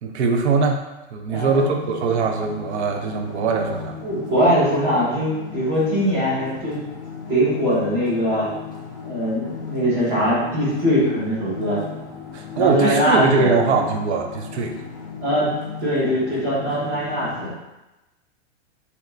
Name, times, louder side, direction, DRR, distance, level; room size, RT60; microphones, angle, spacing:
voice 1, 0.0-0.8 1.1-4.0 12.3-14.7, right 4 dB, 70° right, 3 dB, 0.5 m, -21 dB
voice 2, 1.3-1.7 3.6-3.7 4.0-6.8 7.3-8.5 9.0-11.8 12.6-13.5 15.2-15.5 15.8-17.5, equal, 20° right, -8 dB, 0.7 m, -21 dB
sound 1, 1.4-17.5, left 6 dB, 20° left, 0.3 m, -36 dB
2.8 x 2.3 x 3.2 m, 1.0 s
supercardioid pair, 175°, 35 cm